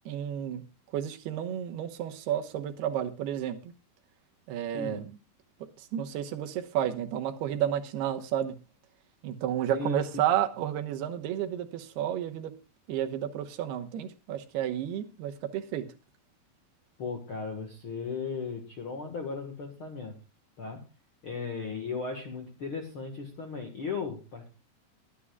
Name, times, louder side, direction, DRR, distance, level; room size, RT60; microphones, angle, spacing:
voice 1, 0.1-0.6 0.9-3.6 4.5-5.1 5.9-8.5 9.2-12.5 12.9-15.9, right 10 dB, 80° right, 3.0 m, -31 dB
voice 2, 4.7-5.0 9.7-10.2 17.0-20.2 20.6-20.8 21.2-24.5, left 5 dB, 55° left, 1.5 m, -36 dB
22.5 x 9.9 x 2.3 m
omnidirectional pair, 4.6 m